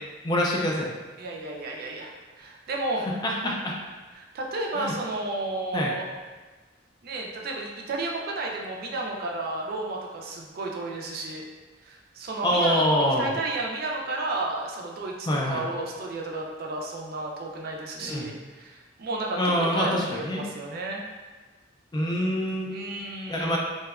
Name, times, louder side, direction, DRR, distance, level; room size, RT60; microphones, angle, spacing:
voice 1, 0.2-0.9 3.2-3.7 4.8-4.9 5.7-5.9 12.4-13.3 15.3-15.6 18.0-18.3 19.4-20.4 21.9-22.7 23.3-23.6, equal, 25° left, -2 dB, 0.3 m, -25 dB
voice 2, 1.2-3.1 3.4-3.7 4.1-6.1 7.0-11.4 11.8-12.9 13.2-19.4 19.7-21.0 22.7-23.6, right 2 dB, 55° right, 0 dB, 0.4 m, -32 dB
2.7 x 2.1 x 2.3 m, 1.3 s
head